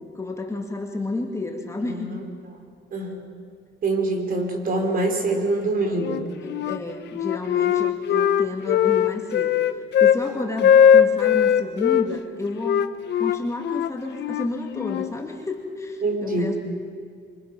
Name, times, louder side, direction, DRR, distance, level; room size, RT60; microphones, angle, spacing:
voice 1, 0.0-2.2 6.4-9.6 10.0-12.8 13.2-16.6, left 2 dB, 15° left, 1 dB, 2.3 m, -31 dB
voice 2, 1.8-2.3 2.9-3.2 3.8-6.2 16.0-16.6, right 2 dB, 50° right, 3 dB, 4.4 m, -25 dB
Wind instrument woodwind instrument, 6.0-6.8 7.1-10.2 10.6-12.1 12.6-15.1, left 9 dB, 70° left, 1.0 m, -19 dB
27.0 x 25.0 x 6.1 m, 2.1 s
cardioid pair, 135°, 19 cm